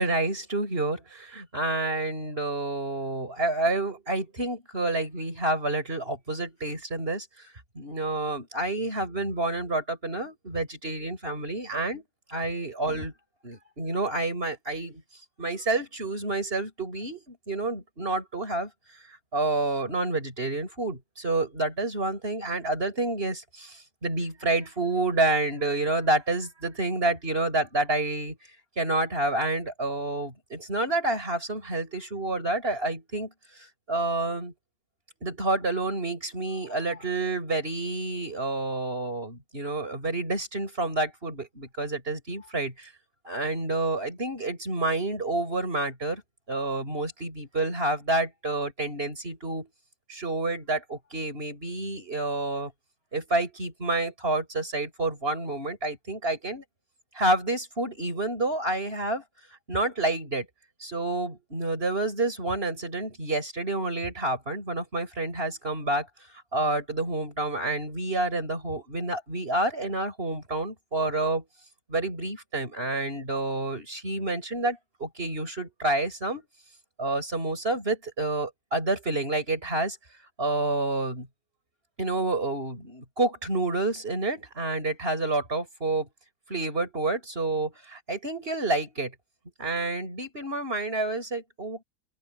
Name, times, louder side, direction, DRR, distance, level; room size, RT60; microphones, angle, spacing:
voice 1, 0.0-7.3 7.8-13.1 13.4-15.0 15.4-18.7 19.3-28.4 28.8-34.5 35.2-42.9 43.3-46.2 46.5-49.7 50.1-52.7 53.1-56.6 57.1-59.2 59.7-60.5 60.8-66.1 66.5-71.5 71.9-76.5 77.0-80.0 80.4-81.3 82.0-86.1 86.5-89.1 89.6-91.8, right 2 dB, 35° right, 7.0 m, -29 dB
open air
omnidirectional pair, 1.8 m